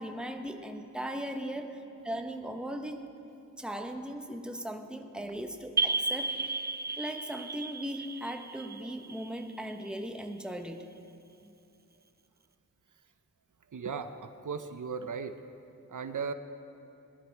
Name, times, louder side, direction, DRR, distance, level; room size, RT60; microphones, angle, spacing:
voice 1, 0.0-3.0 3.6-6.6 7.0-10.9, equal, 5° right, 4 dB, 0.9 m, -38 dB
sound 1, 5.8-10.2, right 3 dB, 30° right, 0.5 m, -34 dB
voice 2, 13.7-15.4 15.9-16.3, right 5 dB, 70° right, 9 dB, 0.6 m, -36 dB
19.0 x 11.5 x 4.6 m, 2.7 s
wide cardioid pair, 65°, 32 cm